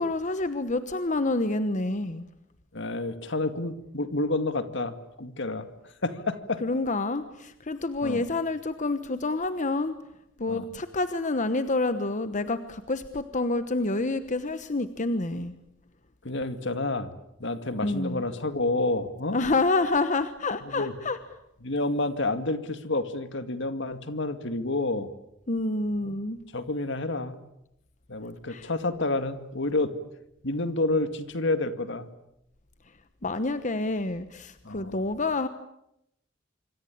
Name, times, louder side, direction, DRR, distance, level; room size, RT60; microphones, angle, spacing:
voice 1, 0.0-2.3 6.6-10.0 10.4-15.5 17.8-18.2 19.3-21.2 25.5-26.4 28.5-28.7 33.2-35.5, left 2 dB, 40° left, 11 dB, 1.1 m, -28 dB
voice 2, 2.7-5.7 6.0-6.6 8.0-8.2 10.5-10.7 16.2-17.1 17.4-19.4 20.6-20.9 21.6-25.1 26.0-26.2 26.5-27.4 28.1-29.9 30.4-32.1 34.6-35.0, left 2 dB, 65° left, 10 dB, 2.2 m, -29 dB
26.0 x 25.0 x 8.6 m, 0.82 s
head